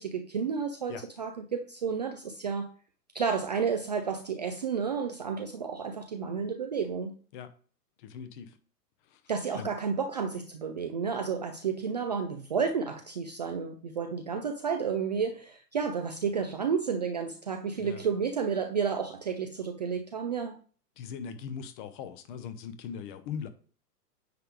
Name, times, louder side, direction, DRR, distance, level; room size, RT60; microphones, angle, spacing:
voice 1, 0.0-2.7 3.1-7.1 9.3-20.6, right 6 dB, 30° right, 0.4 m, -31 dB
voice 2, 8.0-8.6 9.1-9.2 9.5-9.7 17.8-18.0 21.0-23.5, left 7 dB, 30° left, 0.8 m, -40 dB
9.3 x 3.3 x 4.8 m
figure-of-eight pair, 110°, 48 cm